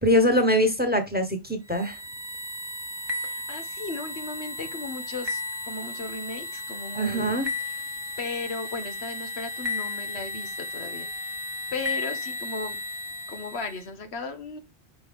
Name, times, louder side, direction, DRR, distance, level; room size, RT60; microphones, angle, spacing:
voice 1, 0.0-2.0 6.9-7.5, equal, 10° right, 1.3 m, -23 dB
sound 1, 1.7-13.8, left 2 dB, 25° right, 1.0 m, -34 dB
voice 2, 3.1-7.8 8.2-11.4 11.7-12.8 13.3-14.6, left 3 dB, 85° left, 1.5 m, -36 dB
6.0 x 5.3 x 3.6 m
omnidirectional pair, 1.1 m